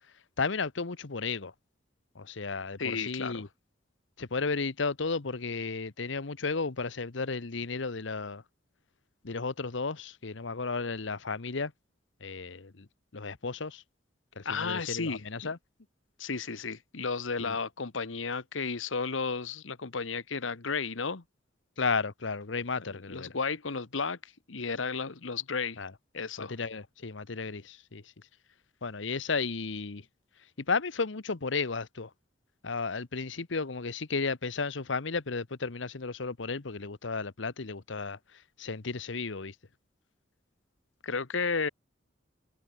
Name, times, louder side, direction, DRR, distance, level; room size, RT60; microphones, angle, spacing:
voice 1, 0.4-1.5 2.1-3.5 4.2-8.4 9.2-11.7 12.2-12.9 13.1-13.8 14.4-15.6 17.4-17.6 21.8-23.4 25.8-25.9 26.4-28.0 28.8-30.0 30.7-32.1 32.6-38.2 38.6-39.5, left 4 dB, 70° left, 1.0 m, -33 dB
voice 2, 2.8-3.4 14.4-15.2 16.2-21.2 23.1-24.2 24.5-25.8 26.1-26.5 41.0-41.7, left 5 dB, 85° left, 1.3 m, -33 dB
head